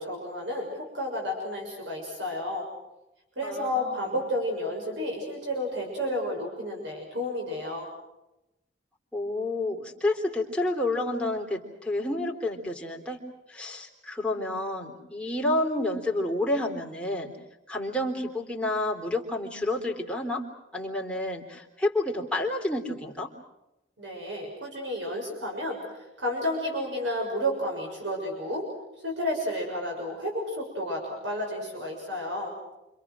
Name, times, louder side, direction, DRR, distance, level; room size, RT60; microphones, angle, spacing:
voice 1, 0.0-2.7 3.4-7.9 24.0-28.6 29.0-32.5, left 1 dB, 80° right, 0 dB, 6.7 m, -31 dB
voice 2, 3.4-4.2 9.1-13.2 13.5-17.3 17.7-20.4 20.7-23.3, left 1 dB, 5° left, -1 dB, 3.7 m, -29 dB
28.5 x 26.5 x 6.3 m, 0.93 s
head